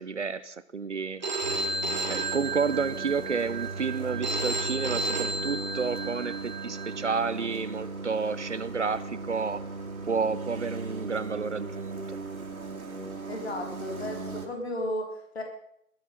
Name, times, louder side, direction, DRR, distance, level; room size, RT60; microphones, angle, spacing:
voice 1, 0.0-1.8 2.1-9.6 10.0-12.2, right 5 dB, 55° right, 14 dB, 0.9 m, -31 dB
Telephone, 1.2-7.2, right 2 dB, 30° right, 1.4 m, -33 dB
sound 1, 1.4-14.5, right 3 dB, 80° right, 3.2 m, -37 dB
voice 2, 13.3-15.4, left 1 dB, 45° left, 2 dB, 4.0 m, -34 dB
20.5 x 9.4 x 5.4 m, 0.70 s
figure-of-eight pair, 165°, 42 cm